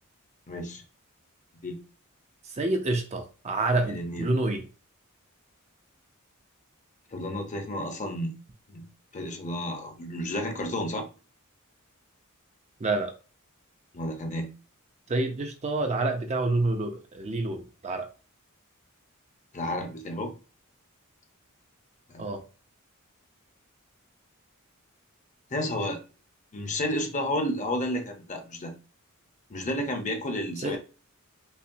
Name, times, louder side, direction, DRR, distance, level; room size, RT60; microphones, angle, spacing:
voice 1, 0.5-0.8 1.6-1.8 3.9-4.3 7.1-8.3 8.7-8.8 9.1-11.1 13.9-14.5 19.5-20.3 22.1-22.3 25.5-26.0 26.5-28.7 29.5-30.8, left 1 dB, 35° left, 0.7 m, -31 dB
voice 2, 2.5-4.6 12.8-13.1 15.1-18.1 22.2-22.4 30.6-30.8, right 2 dB, 30° right, 0.5 m, -28 dB
5.5 x 2.1 x 2.6 m
head